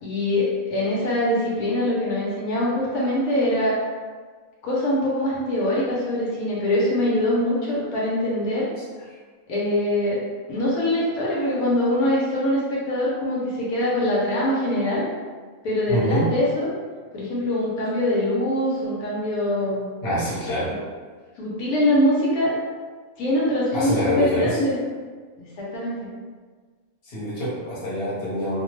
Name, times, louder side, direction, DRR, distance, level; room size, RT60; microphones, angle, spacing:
voice 1, 0.0-3.8 4.6-8.7 9.5-10.2 10.5-15.1 15.6-16.7 17.1-19.9 20.7-20.8 21.4-22.5 23.2-24.8 25.4-26.0, left 1 dB, 85° left, -6 dB, 1.3 m, -23 dB
voice 2, 15.9-16.3 20.0-20.7 23.7-24.6 27.0-28.6, equal, 45° left, -8 dB, 1.1 m, -25 dB
2.8 x 2.2 x 3.1 m, 1.5 s
omnidirectional pair, 1.5 m